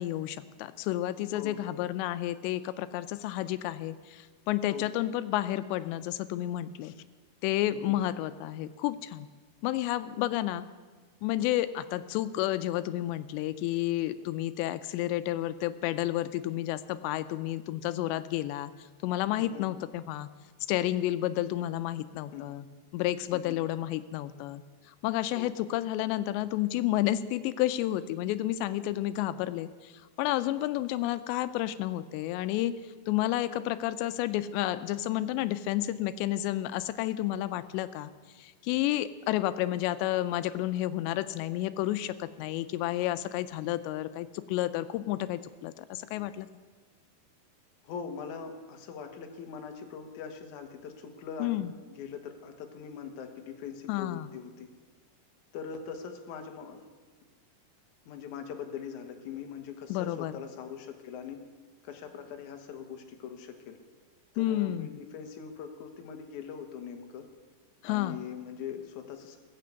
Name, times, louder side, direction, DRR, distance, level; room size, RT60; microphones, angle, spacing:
voice 1, 0.0-6.9 7.4-9.3 9.6-10.7 11.2-18.7 19.0-20.3 20.7-22.6 22.9-24.6 25.0-29.9 30.2-32.7 33.1-38.1 38.4-46.5 51.4-51.7 53.9-54.3 59.9-60.3 64.4-64.9 67.8-68.2, left 14 dB, 90° left, 13 dB, 2.8 m, -31 dB
voice 2, 1.3-1.7 4.7-4.9 7.7-8.0 10.2-10.3 19.4-19.7 22.3-22.5 23.3-23.6 25.3-25.5 47.8-51.6 52.0-54.7 55.5-56.9 58.1-61.5 61.8-63.8 64.3-67.3 67.8-69.4, left 7 dB, 60° left, 4 dB, 2.2 m, -42 dB
18.5 x 7.6 x 8.1 m, 1.4 s
omnidirectional pair, 4.9 m